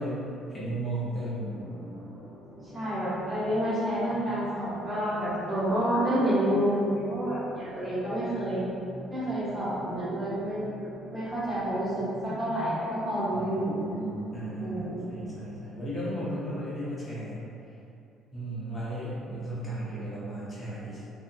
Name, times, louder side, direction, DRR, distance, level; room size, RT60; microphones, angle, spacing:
voice 1, 0.0-1.7 13.3-17.4 18.3-21.0, right 1 dB, 15° left, -9 dB, 0.8 m, -35 dB
sound 1, 1.4-15.6, equal, 30° right, 0.7 m, -46 dB
voice 2, 2.7-8.6 9.1-13.8 14.6-15.0, equal, 5° right, -12 dB, 1.0 m, -29 dB
3.2 x 2.1 x 2.6 m, 2.7 s
cardioid pair, 140°, 0 cm